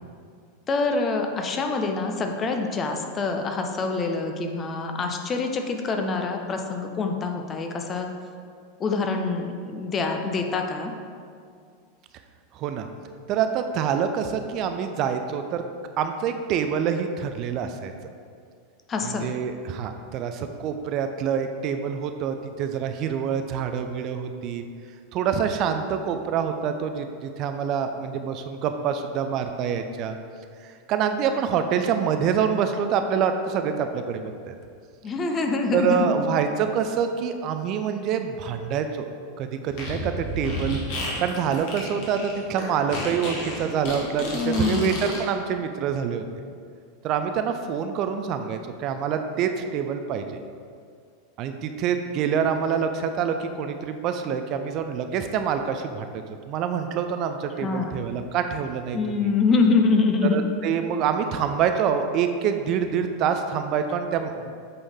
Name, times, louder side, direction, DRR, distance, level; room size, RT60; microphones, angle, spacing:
voice 1, 0.7-8.1 8.8-10.9 18.9-19.3 35.0-36.1 44.3-44.9 57.6-57.9 58.9-60.4, left 4 dB, 25° left, 4 dB, 0.7 m, -25 dB
voice 2, 12.5-12.9 13.3-15.6 16.0-17.9 19.0-24.6 25.1-30.2 30.6-34.5 35.7-39.0 39.4-40.8 41.2-46.2 47.0-50.4 51.4-59.3 60.3-64.3, right 7 dB, 40° right, 7 dB, 0.4 m, -26 dB
Fart, 39.7-45.2, left 1 dB, 50° left, 1.8 m, -32 dB
7.9 x 5.4 x 3.5 m, 2.2 s
figure-of-eight pair, 85°, 0 cm